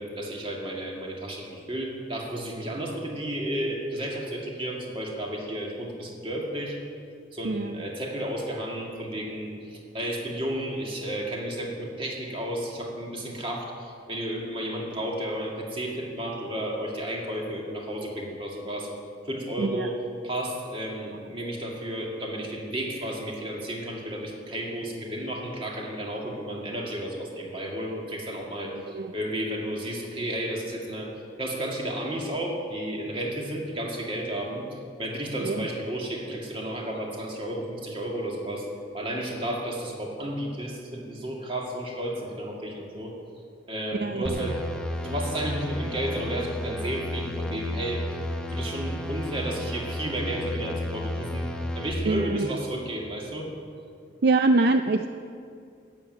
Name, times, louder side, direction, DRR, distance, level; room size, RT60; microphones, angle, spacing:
voice 1, 0.0-6.8 7.3-18.9 19.2-20.0 20.2-31.1 31.4-38.7 38.9-43.1 43.7-44.6 44.9-48.1 48.5-51.5 51.8-53.5, right 1 dB, 30° right, -1 dB, 2.0 m, -32 dB
voice 2, 28.7-29.1 35.4-35.7 43.9-44.5 52.0-52.5 54.2-55.1, right 3 dB, 55° right, 7 dB, 0.4 m, -24 dB
sound 1, 44.3-51.9, left 1 dB, 5° left, 0.7 m, -33 dB
12.0 x 7.7 x 9.1 m, 2.4 s
head